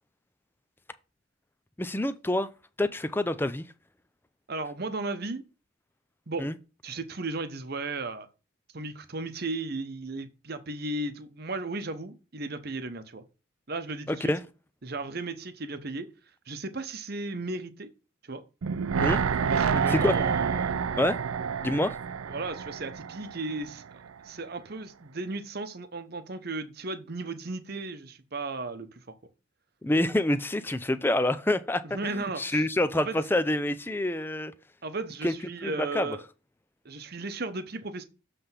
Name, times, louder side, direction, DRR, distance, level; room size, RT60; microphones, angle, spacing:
voice 1, 1.8-2.5 2.8-3.7 6.4-6.6 14.1-14.4 19.0-19.2 19.9-20.2 21.0-21.2 21.6-22.0 29.8-34.5 35.2-35.3 35.6-36.1, left 1 dB, 10° left, 0.4 m, -27 dB
voice 2, 4.5-5.4 6.3-6.5 6.8-8.3 8.7-13.2 13.7-14.3 14.8-16.1 16.5-17.9 18.2-18.4 19.5-20.8 21.7-21.9 22.3-29.0 31.8-32.6 33.0-33.2 34.8-36.2 36.8-38.0, right 3 dB, 50° right, 0.9 m, -35 dB
sound 1, 18.6-23.8 24.1-24.2, right 6 dB, 85° right, 0.5 m, -28 dB
7.7 x 3.4 x 5.6 m
head